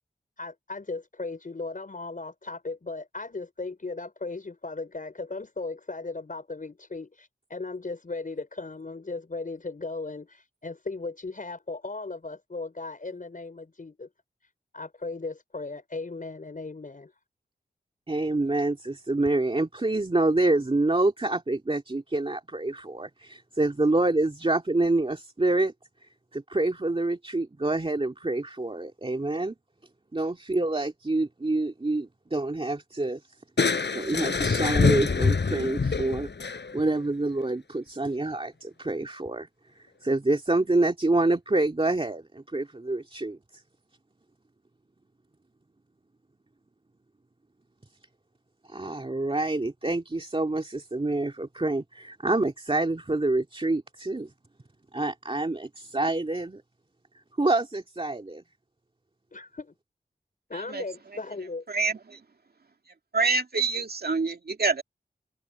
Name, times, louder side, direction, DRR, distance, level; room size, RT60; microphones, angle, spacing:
voice 1, 0.4-14.1 14.7-17.1 59.3-59.7 60.5-61.6, left 3 dB, 50° left, 5.2 m, -37 dB
voice 2, 18.1-25.7 26.3-29.5 30.1-33.2 33.9-36.3 36.7-39.5 40.0-43.6 48.7-54.3 54.9-56.6 57.4-58.4, right 2 dB, 30° right, 2.4 m, -27 dB
Crushing, 33.6-37.0, left 4 dB, 75° left, 5.6 m, -25 dB
voice 3, 61.7-62.2 63.1-64.8, right 4 dB, 60° right, 2.1 m, -26 dB
wide cardioid pair, 70°, 18 cm